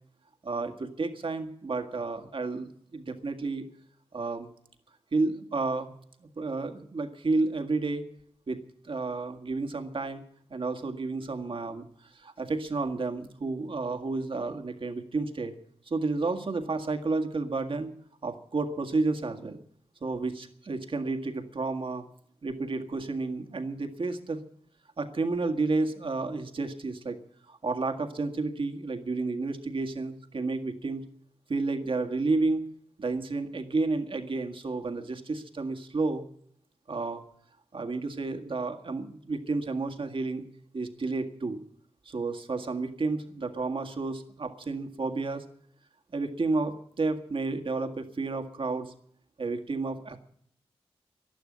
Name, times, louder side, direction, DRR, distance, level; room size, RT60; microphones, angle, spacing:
voice 1, 0.4-3.7 4.1-4.5 5.1-5.9 6.2-8.0 8.5-8.6 8.8-10.2 10.5-15.5 15.9-17.9 18.2-19.6 20.0-22.1 22.4-24.4 25.0-27.2 27.5-31.0 31.5-32.7 33.0-36.2 36.9-37.2 37.7-40.4 40.7-41.6 42.1-45.4 46.1-48.9 49.4-50.2, right 3 dB, 60° right, 6 dB, 1.9 m, -31 dB
12.0 x 11.5 x 9.8 m, 0.67 s
cardioid pair, 65°, 10 cm